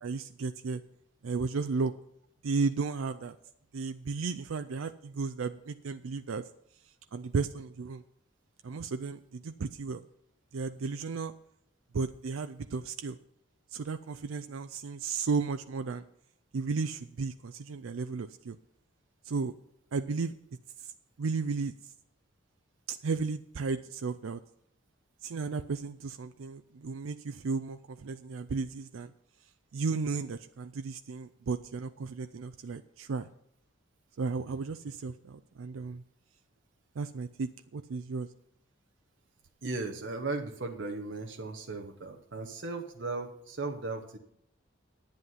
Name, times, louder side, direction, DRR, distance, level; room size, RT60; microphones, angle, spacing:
voice 1, 0.0-0.8 1.2-1.9 2.4-3.4 3.7-6.5 7.1-8.0 8.6-10.0 10.5-11.3 11.9-13.2 13.7-16.0 16.5-18.6 19.2-19.5 19.9-20.3 20.8-20.9 21.2-21.7 22.9-24.4 25.2-29.1 29.7-33.3 34.2-36.0 37.0-38.3, right 4 dB, 85° right, 10 dB, 0.5 m, -34 dB
voice 2, 39.6-44.2, right 3 dB, 65° right, 3 dB, 1.0 m, -36 dB
10.5 x 9.5 x 5.7 m, 0.71 s
head